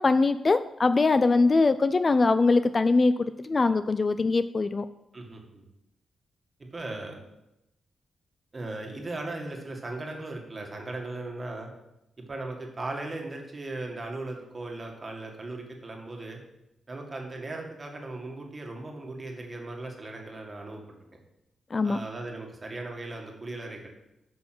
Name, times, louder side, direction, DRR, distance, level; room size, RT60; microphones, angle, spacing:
voice 1, 0.0-3.1 3.4-4.9 21.7-22.0, left 3 dB, 30° left, 12 dB, 0.3 m, -22 dB
voice 2, 5.1-5.6 6.6-7.2 8.5-11.7 12.2-16.4 16.9-20.8 21.8-23.9, right 2 dB, 30° right, 2 dB, 1.9 m, -37 dB
9.4 x 6.2 x 6.0 m, 0.90 s
wide cardioid pair, 130°, 0 cm